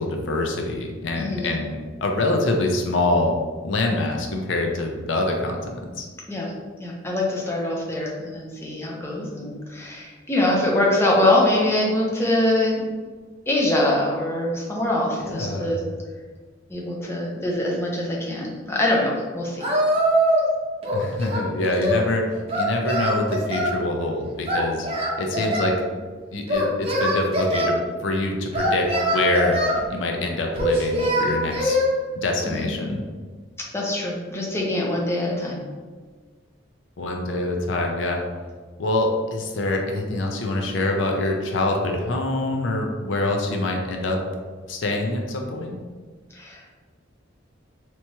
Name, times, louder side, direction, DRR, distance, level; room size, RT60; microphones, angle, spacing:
voice 1, 0.0-3.4 3.6-6.1 15.2-15.7 20.9-22.2 22.5-24.9 25.2-25.7 26.3-29.6 29.9-31.8 32.2-33.0 37.0-38.2 38.8-44.2 44.7-45.7, left 2 dB, 75° left, 2 dB, 0.5 m, -25 dB
voice 2, 1.1-1.5 6.3-6.5 6.8-12.8 13.5-15.8 16.7-19.7 25.4-25.5 32.4-32.7 33.7-35.6 46.3-46.7, left 1 dB, 15° left, -3 dB, 0.6 m, -24 dB
Singing, 19.6-20.5 20.8-22.0 22.5-23.8 24.5-25.8 26.5-27.7 28.5-29.8 30.5-31.9, equal, 30° right, 0.7 m, -22 dB
3.4 x 2.9 x 2.8 m, 1.5 s
head